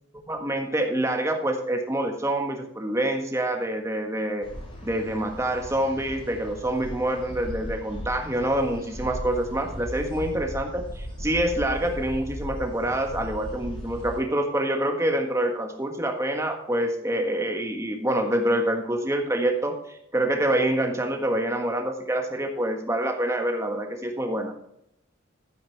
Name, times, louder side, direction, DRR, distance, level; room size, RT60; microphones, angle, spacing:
voice 1, 0.3-4.5 4.8-24.5, right 1 dB, 15° right, 3 dB, 1.5 m, -26 dB
sound 1, 4.4-14.2, equal, 25° left, 4.5 m, -37 dB
12.0 x 10.0 x 3.4 m, 0.78 s
head